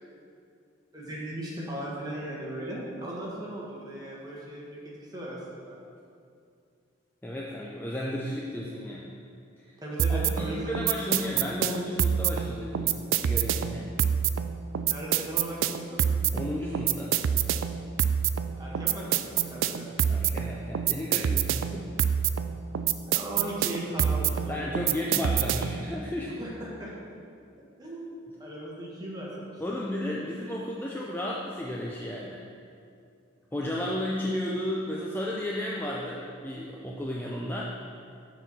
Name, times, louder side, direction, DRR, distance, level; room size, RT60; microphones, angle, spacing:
voice 1, 0.9-4.8 5.1-5.8 9.8-10.8 14.8-16.0 18.6-19.9 23.1-24.8 26.3-26.9 27.8-29.8, right 1 dB, 20° right, -5 dB, 1.3 m, -37 dB
voice 2, 7.2-9.2 9.6-9.8 10.1-13.0 13.2-14.0 16.3-17.1 20.1-21.9 24.3-26.3 29.6-32.4 33.5-37.6, left 1 dB, 10° left, -4 dB, 0.4 m, -33 dB
sound 1, 10.0-25.9, right 9 dB, 80° right, 0.3 m, -27 dB
6.7 x 4.1 x 5.9 m, 2.4 s
head